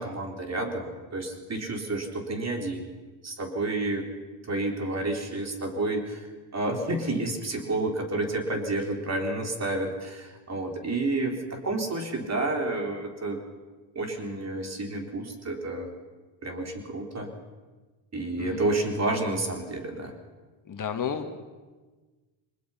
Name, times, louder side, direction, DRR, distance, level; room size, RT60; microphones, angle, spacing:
voice 1, 0.0-2.9 3.2-4.0 4.5-6.3 6.5-13.4 14.0-15.9 16.4-17.3 18.1-20.1, right 2 dB, 30° right, 3 dB, 3.9 m, -30 dB
voice 2, 20.7-21.4, left 7 dB, 40° left, 6 dB, 2.0 m, -32 dB
23.0 x 20.0 x 5.8 m, 1.3 s
supercardioid pair, 90°, 48 cm